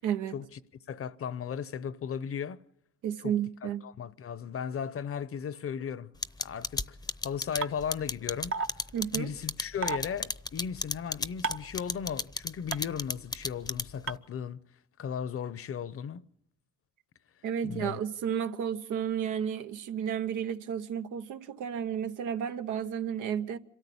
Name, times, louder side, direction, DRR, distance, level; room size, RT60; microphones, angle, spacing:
voice 1, 0.0-0.3 3.0-3.9 8.9-9.3 17.4-23.6, right 8 dB, 90° right, 1.1 m, -32 dB
voice 2, 0.9-2.6 3.2-3.3 3.6-6.1 6.4-7.0 7.2-8.5 9.1-14.6 15.0-16.2 17.6-18.0, left 7 dB, 50° left, 0.8 m, -36 dB
sound 1, 6.2-14.1, left 3 dB, 15° left, 0.7 m, -32 dB
sound 2, 7.6-7.7 8.5-8.7 9.8-10.0 11.4-11.7 12.7-12.8 14.1-14.2, right 5 dB, 45° right, 0.9 m, -30 dB
26.0 x 13.5 x 8.6 m
cardioid pair, 90°, 30 cm